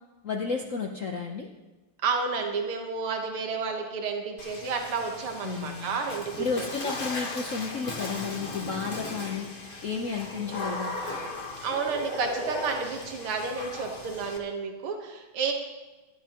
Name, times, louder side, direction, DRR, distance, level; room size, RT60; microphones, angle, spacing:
voice 1, 0.2-1.5 5.4-6.0 6.4-11.0, left 5 dB, 60° left, 1 dB, 0.9 m, -32 dB
voice 2, 2.0-6.7 11.6-15.5, right 5 dB, 80° right, 3 dB, 2.1 m, -31 dB
Water / Splash splatter, 4.4-14.4, left 2 dB, 30° left, 1.2 m, -37 dB
17.5 x 13.0 x 3.0 m, 1.1 s
omnidirectional pair, 2.4 m